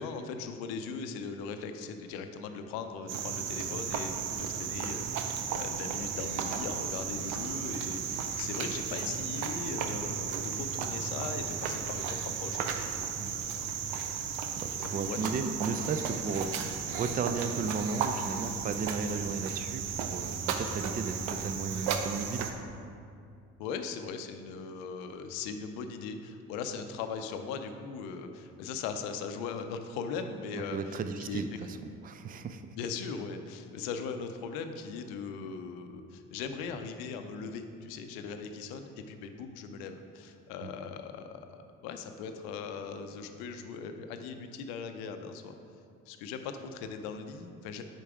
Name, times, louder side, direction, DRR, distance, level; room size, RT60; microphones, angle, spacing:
voice 1, 0.0-12.8 14.8-15.5 23.6-31.0 31.2-31.4 32.7-45.5 46.1-47.8, left 5 dB, 75° left, 7 dB, 0.6 m, -39 dB
Cricket, 3.1-22.5, right 7 dB, 80° right, 0.6 m, -34 dB
voice 2, 14.6-22.5 30.7-32.7 40.6-40.7, right 4 dB, 25° right, 9 dB, 0.4 m, -35 dB
5.0 x 4.5 x 4.7 m, 2.4 s
hypercardioid pair, 60°, 37 cm